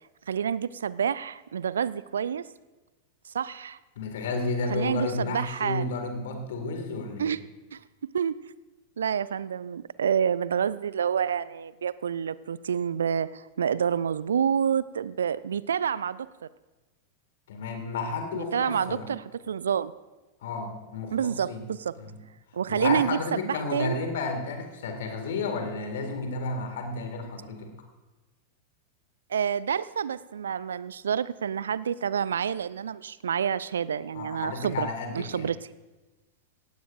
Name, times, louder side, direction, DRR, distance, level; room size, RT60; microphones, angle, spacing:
voice 1, 0.3-2.5 3.3-3.8 4.7-5.9 7.2-7.4 7.7-8.4 9.0-16.3 18.3-19.9 21.1-22.0 22.5-24.0 29.3-34.9 35.1-35.6, right 8 dB, 65° right, 18 dB, 0.3 m, -28 dB
voice 2, 4.0-7.4 17.5-19.1 20.4-21.6 22.0-22.2 22.7-27.7 34.1-35.5, left 3 dB, 60° left, 4 dB, 2.1 m, -32 dB
17.5 x 16.0 x 2.5 m, 1.1 s
figure-of-eight pair, 90°, 0 cm